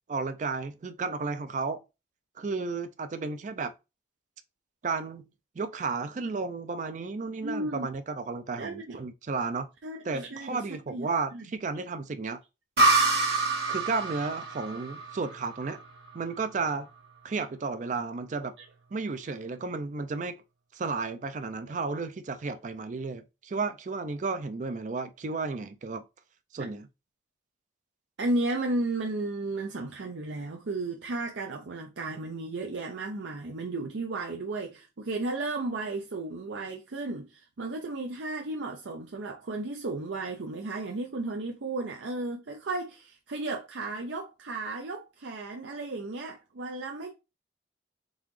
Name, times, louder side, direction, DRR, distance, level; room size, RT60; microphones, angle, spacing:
voice 1, 0.1-1.8 2.4-3.7 4.8-5.2 5.6-9.7 10.0-12.4 13.7-15.8 16.1-16.9 17.2-18.5 18.9-20.4 20.7-26.0 26.5-26.9, right 4 dB, 40° right, 0.4 m, -33 dB
voice 2, 7.4-7.9 8.6-9.0 9.8-11.5 17.4-17.5 26.6-26.7 28.2-47.1, right 2 dB, 80° right, 0.6 m, -34 dB
sound 1, 12.8-16.3, right 2 dB, 60° right, 1.5 m, -26 dB
3.9 x 3.8 x 3.1 m
head